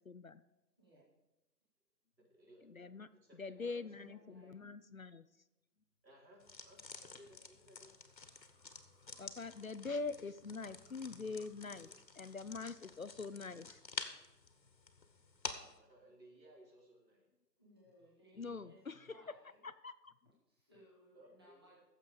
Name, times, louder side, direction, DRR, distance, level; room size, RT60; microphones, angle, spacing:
voice 1, 0.0-0.4 2.6-5.4 9.2-13.8 18.4-19.2 19.6-20.1, left 4 dB, 55° left, 14 dB, 0.5 m, -44 dB
voice 2, 2.2-4.0 4.3-4.4 6.0-8.0 15.7-17.3 21.1-21.8, right 1 dB, 85° right, -3 dB, 4.9 m, -62 dB
voice 3, 3.6-4.6 17.6-18.8 19.1-19.6 20.5-21.8, equal, 15° right, -8 dB, 1.9 m, -63 dB
Liquid, 6.0-16.2, left 1 dB, 25° left, 2.3 m, -73 dB
sound 1, 6.4-15.8, left 4 dB, 90° left, 1.7 m, -50 dB
15.5 x 7.4 x 5.1 m, 0.99 s
figure-of-eight pair, 180°, 50 cm